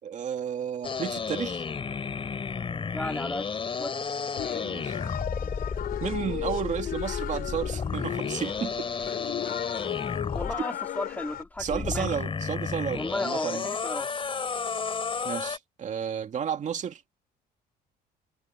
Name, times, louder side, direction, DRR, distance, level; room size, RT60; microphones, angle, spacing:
voice 1, 0.0-1.6 4.5-5.0 6.0-8.9 11.6-13.7 15.2-17.0, right 8 dB, 45° right, 2.5 m, -32 dB
sound 1, 0.8-10.6 11.6-15.6, left 5 dB, 30° left, 4.2 m, -32 dB
voice 2, 2.9-3.5 3.8-4.0 10.3-12.1 12.9-14.1, left 1 dB, 10° left, 2.6 m, -34 dB
sound 2, 4.4-11.4, left 11 dB, 65° left, 4.9 m, -35 dB
cardioid pair, 110°, 17 cm